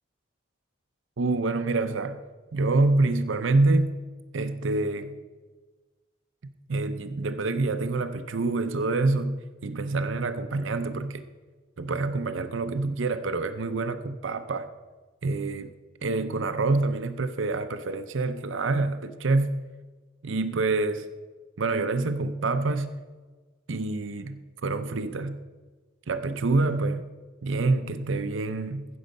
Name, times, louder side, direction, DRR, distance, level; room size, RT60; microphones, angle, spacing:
voice 1, 1.2-2.2 2.5-4.0 4.3-5.1 6.7-11.2 11.8-14.7 15.2-15.7 16.0-19.5 20.2-21.1 21.6-22.9 23.7-25.4 26.1-27.1 27.4-28.9, right 3 dB, 80° right, 9 dB, 0.6 m, -26 dB
15.5 x 6.3 x 5.3 m, 1.3 s
head